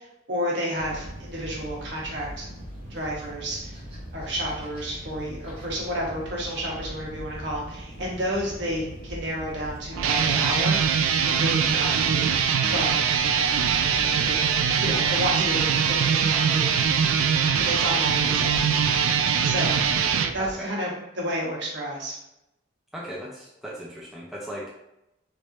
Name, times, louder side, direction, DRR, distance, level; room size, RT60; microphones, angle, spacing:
voice 1, 0.0-2.5 2.9-3.7 4.1-12.4 12.7-13.0 13.3-18.8 19.4-20.0 20.3-22.2, equal, 60° right, -3 dB, 1.1 m, -31 dB
sound 1, 0.8-20.5, equal, 30° right, 0.8 m, -41 dB
sound 2, 9.9-20.3, right 7 dB, 85° right, 0.3 m, -22 dB
voice 2, 20.4-20.7 22.9-24.7, equal, ahead, -4 dB, 0.3 m, -37 dB
3.2 x 3.1 x 2.6 m, 0.86 s
head